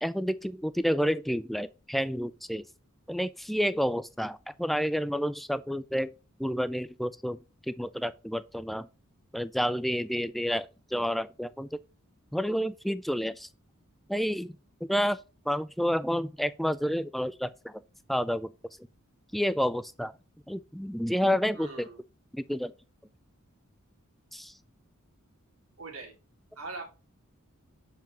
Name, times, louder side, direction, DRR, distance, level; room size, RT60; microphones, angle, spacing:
voice 1, 0.0-2.6 3.1-6.1 6.4-7.4 7.7-8.9 9.3-11.7 12.3-13.5 14.1-14.5 14.8-15.2 15.5-17.8 18.1-18.5 19.3-20.1 20.5-21.9 22.3-22.7 24.3-24.5, equal, ahead, 0.3 m, -29 dB
voice 2, 21.5-22.0 25.8-26.1 26.6-26.8, right 3 dB, 75° right, 2.5 m, -41 dB
6.9 x 5.8 x 2.9 m
head